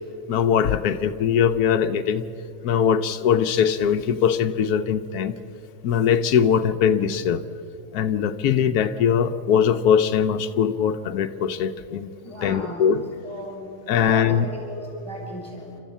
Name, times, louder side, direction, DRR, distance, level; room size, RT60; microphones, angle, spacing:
voice 1, 0.3-2.2 2.6-5.3 5.8-7.4 7.9-12.1 12.4-13.0 13.9-14.5, left 8 dB, 85° left, 8 dB, 1.2 m, -21 dB
voice 2, 12.2-15.8, left 1 dB, 10° left, -1 dB, 5.9 m, -36 dB
29.5 x 13.0 x 8.2 m, 2.9 s
omnidirectional pair, 1.6 m